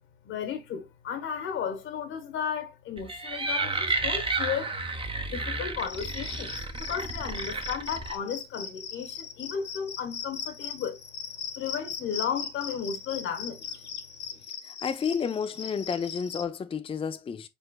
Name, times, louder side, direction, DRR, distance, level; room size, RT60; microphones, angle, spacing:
voice 1, 0.2-4.7 5.3-11.0 11.5-13.8, left 7 dB, 85° left, 1.5 m, -34 dB
sound 1, 3.0-8.1, right 3 dB, 25° right, 1.0 m, -31 dB
Cricket, 5.8-16.4, left 7 dB, 60° left, 1.2 m, -39 dB
voice 2, 14.6-17.5, left 6 dB, 25° left, 0.4 m, -31 dB
4.4 x 4.3 x 2.3 m
cardioid pair, 90°, 20 cm